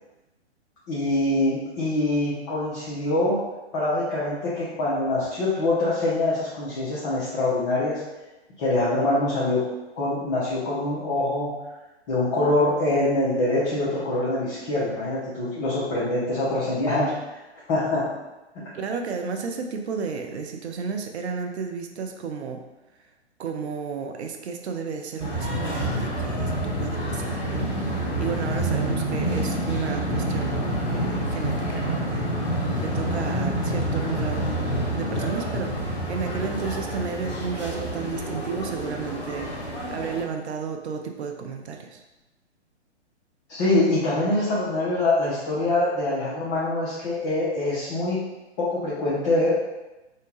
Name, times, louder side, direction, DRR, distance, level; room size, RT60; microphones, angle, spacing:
voice 1, 0.9-3.4 3.7-8.0 8.6-9.6 10.0-11.6 12.1-17.2 17.7-18.1 18.5-18.6 43.5-48.2 48.6-49.5, left 2 dB, 25° left, -9 dB, 0.6 m, -24 dB
voice 2, 18.7-22.6 23.4-32.3 32.8-34.5 34.9-42.0, right 5 dB, 70° right, 4 dB, 0.5 m, -32 dB
sound 1, 25.2-40.2, right 1 dB, 5° right, 0.9 m, -28 dB
2.7 x 2.1 x 3.0 m, 1.0 s
figure-of-eight pair, 125°, 35 cm